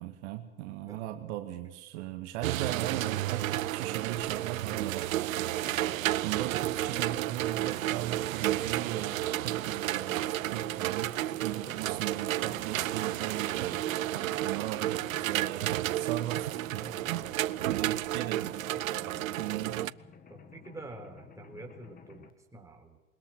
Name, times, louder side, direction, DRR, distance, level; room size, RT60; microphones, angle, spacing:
voice 1, 0.0-11.2 11.4-17.3 17.7-18.5 19.4-19.8, right 14 dB, 55° right, 6 dB, 2.0 m, -38 dB
sound 1, 2.4-19.9, right 14 dB, 80° right, 0.6 m, -32 dB
Mechanisms, 5.5-22.3, left 6 dB, 20° left, 1.9 m, -52 dB
voice 2, 16.7-17.9 18.5-19.0 20.3-23.0, right 2 dB, 10° right, 1 dB, 4.4 m, -49 dB
21.5 x 20.5 x 6.2 m, 1.1 s
hypercardioid pair, 110°, 40 cm